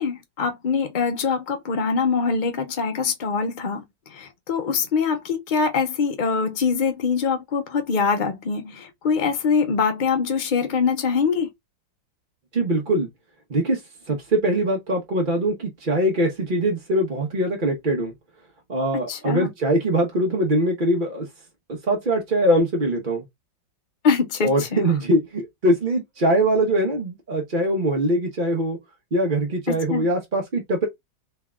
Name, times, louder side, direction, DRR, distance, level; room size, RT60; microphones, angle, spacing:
voice 1, 0.0-3.8 4.1-11.5 19.1-19.5 24.0-24.8 29.7-30.1, left 5 dB, 65° left, 0.4 m, -23 dB
voice 2, 12.5-13.1 13.5-13.8 14.1-18.1 18.7-21.2 21.9-23.2 24.4-28.8 29.1-30.9, right 1 dB, 35° right, 0.8 m, -22 dB
3.6 x 3.4 x 3.5 m
omnidirectional pair, 2.1 m